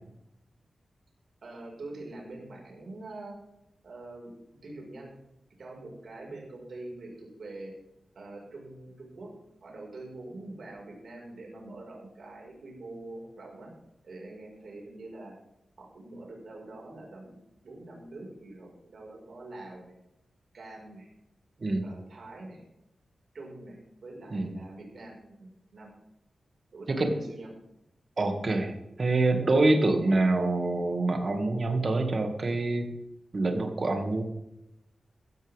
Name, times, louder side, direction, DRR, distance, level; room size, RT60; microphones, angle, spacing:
voice 1, 1.4-3.4 3.8-5.1 5.6-7.7 8.2-9.3 9.6-13.7 14.0-15.3 15.8-19.9 20.5-21.1 21.8-22.6 23.3-25.2 25.7-25.9 26.7-27.5, right 2 dB, 65° right, -1 dB, 5.2 m, -44 dB
voice 2, 28.2-32.9 33.3-34.2, right 2 dB, 45° right, 4 dB, 2.2 m, -26 dB
14.5 x 13.5 x 3.6 m, 0.86 s
wide cardioid pair, 110°, 0 cm